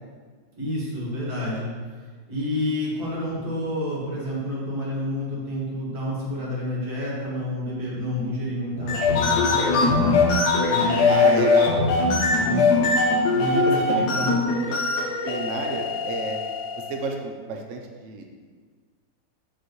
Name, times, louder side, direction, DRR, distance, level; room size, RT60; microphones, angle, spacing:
voice 1, 0.6-1.8 2.3-11.6 12.4-12.7 13.1-14.4, left 1 dB, 55° right, -6 dB, 2.1 m, -29 dB
sound 1, 8.8-17.0, left 3 dB, 70° left, 1.2 m, -21 dB
voice 2, 11.1-11.8 12.3-12.7 13.9-14.7 15.2-16.4 16.9-18.3, right 4 dB, 75° right, 2 dB, 0.7 m, -31 dB
7.7 x 4.2 x 3.1 m, 1.5 s
omnidirectional pair, 2.0 m